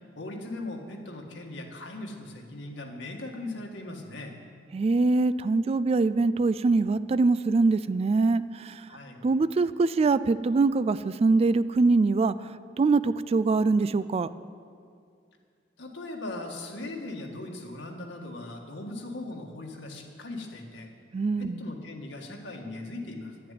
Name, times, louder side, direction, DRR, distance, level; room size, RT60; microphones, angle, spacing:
voice 1, 0.2-4.3 8.9-9.2 15.8-20.9 21.4-23.5, left 2 dB, 90° left, 1 dB, 1.8 m, -39 dB
voice 2, 4.7-8.9 9.2-14.3 21.1-21.6, right 3 dB, 35° right, 15 dB, 0.3 m, -23 dB
11.0 x 7.6 x 9.4 m, 2.3 s
head